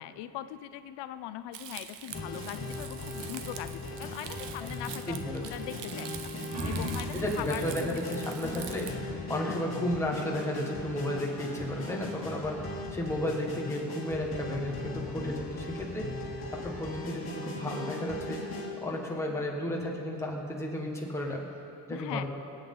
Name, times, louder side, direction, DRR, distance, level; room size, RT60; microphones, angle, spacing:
voice 1, 0.0-6.3 6.6-7.6 7.9-8.0 9.5-9.6 21.9-22.3, left 13 dB, 85° left, 12 dB, 0.6 m, -41 dB
Crumpling crinkling, 1.5-8.9, right 9 dB, 85° right, 1.0 m, -45 dB
sound 1, 2.1-18.7, left 2 dB, 30° left, 2.6 m, -39 dB
voice 2, 5.1-5.4 6.8-6.9 7.1-21.4 21.9-22.3, left 1 dB, 5° left, -2 dB, 1.6 m, -33 dB
sound 2, 6.5-9.7, right 1 dB, 40° right, 2.0 m, -39 dB
24.5 x 8.9 x 3.9 m, 2.7 s
cardioid pair, 175°, 41 cm